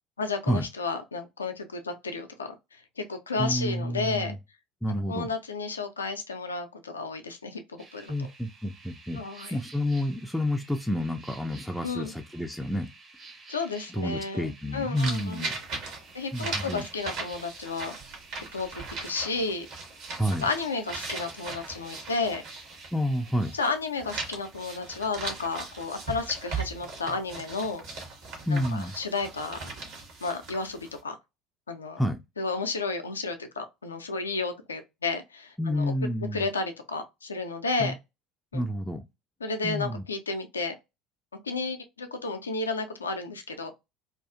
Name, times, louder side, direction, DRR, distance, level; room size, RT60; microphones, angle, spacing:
voice 1, 0.2-4.3 5.1-8.1 9.1-9.6 11.8-12.1 13.5-15.5 16.1-18.0 18.4-19.7 20.4-22.4 23.5-27.8 28.5-29.6 30.2-31.2 31.7-32.0 32.4-35.9 36.3-37.9 38.5-38.6 39.4-40.8 41.4-43.7, left 3 dB, 85° left, 0.3 m, -32 dB
voice 2, 3.4-4.3 4.8-5.3 8.1-9.2 9.5-12.9 13.9-15.5 16.3-16.8 20.2-20.4 22.9-23.5 28.5-28.9 32.0-32.2 35.6-36.4 37.8-37.9 38.5-39.0 39.6-40.0, equal, 5° left, 0.3 m, -29 dB
sound 1, 7.8-23.4, right 3 dB, 35° right, 0.7 m, -51 dB
sound 2, 15.0-23.7 24.0-31.0, right 4 dB, 60° right, 1.0 m, -39 dB
2.4 x 2.3 x 2.4 m
figure-of-eight pair, 65°, 0 cm